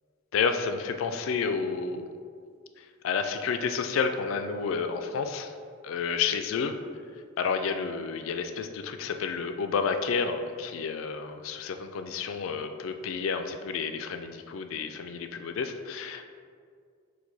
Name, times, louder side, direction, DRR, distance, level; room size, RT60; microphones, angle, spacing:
voice 1, 0.3-2.1 2.8-5.5 5.8-6.7 7.4-16.2, left 5 dB, 70° left, 7 dB, 0.3 m, -30 dB
4.6 x 2.2 x 3.9 m, 2.1 s
head